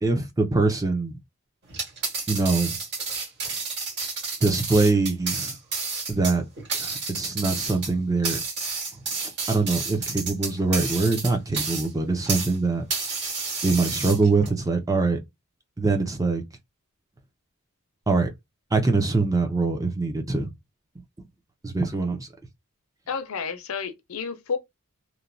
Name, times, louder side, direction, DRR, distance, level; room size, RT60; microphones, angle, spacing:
voice 1, 0.0-1.2 2.3-2.8 4.4-5.6 6.1-6.4 6.8-8.4 9.2-12.8 13.6-15.2 15.8-16.4 18.1-18.3 18.7-20.5 21.6-22.3, right 3 dB, 15° right, 0.4 m, -23 dB
sound 1, 1.7-12.6 12.9-14.5, right 4 dB, 50° right, 1.7 m, -30 dB
voice 2, 23.1-24.6, left 6 dB, 70° left, 0.5 m, -30 dB
3.0 x 2.1 x 2.5 m
head